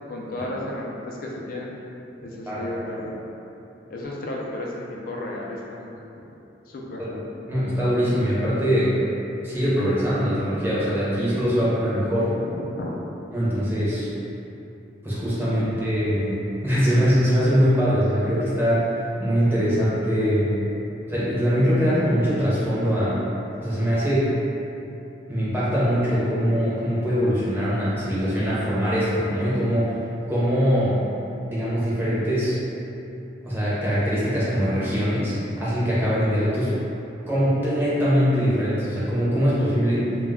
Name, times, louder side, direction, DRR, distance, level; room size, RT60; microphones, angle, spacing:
voice 1, 0.1-1.7 2.2-3.2 3.9-6.0 6.7-7.0 12.4-12.9 15.5-15.7, left 1 dB, 50° left, -2 dB, 0.3 m, -33 dB
voice 2, 7.5-9.0 9.4-12.3 13.3-14.1 15.0-20.5 21.1-23.2 23.6-24.4 25.3-30.0 30.3-31.0 31.4-32.5 33.4-36.7 37.3-40.1, equal, 10° right, -10 dB, 0.6 m, -22 dB
2.2 x 2.1 x 3.4 m, 2.9 s
head